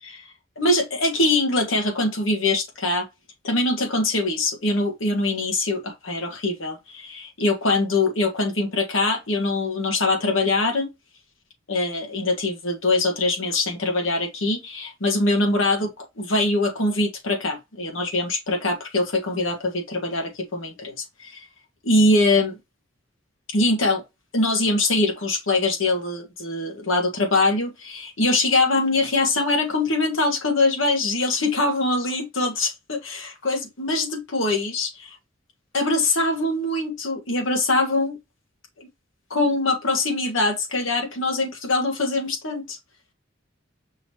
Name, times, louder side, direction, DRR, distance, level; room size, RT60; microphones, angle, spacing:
voice 1, 0.0-3.0 3.4-10.9 11.7-21.5 21.8-22.6 23.5-24.0 24.3-35.1 35.7-38.2 38.8-38.9 39.3-42.8, left 2 dB, 85° left, 1.5 m, -23 dB
5.6 x 3.1 x 2.7 m
head